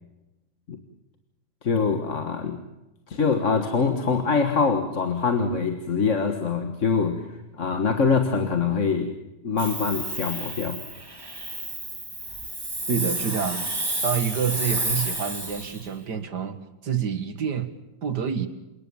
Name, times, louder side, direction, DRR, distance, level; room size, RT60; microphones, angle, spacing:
voice 1, 1.6-2.6 3.1-9.1 9.4-10.8, left 5 dB, 40° left, 6 dB, 1.7 m, -24 dB
Hiss, 9.6-15.9, right 1 dB, 10° right, 2.2 m, -31 dB
voice 2, 12.9-13.7 14.0-17.7 18.0-18.5, right 7 dB, 60° right, 10 dB, 2.2 m, -27 dB
28.5 x 18.5 x 7.1 m, 0.98 s
omnidirectional pair, 2.1 m